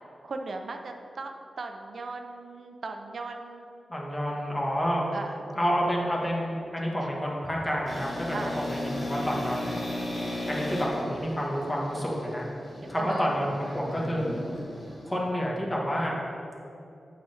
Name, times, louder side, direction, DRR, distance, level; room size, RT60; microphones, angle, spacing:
voice 1, 0.2-1.3 1.6-3.7 5.1-5.4 8.3-8.6 13.0-13.3, right 3 dB, 65° right, 4 dB, 0.5 m, -37 dB
voice 2, 3.9-5.1 5.6-9.8 10.5-12.5 12.9-14.3 15.1-16.2, equal, 20° left, -3 dB, 1.6 m, -29 dB
sound 1, 7.8-15.1, left 1 dB, 55° left, 1.7 m, -36 dB
7.8 x 5.1 x 4.1 m, 2.7 s
cardioid pair, 70°, 0 cm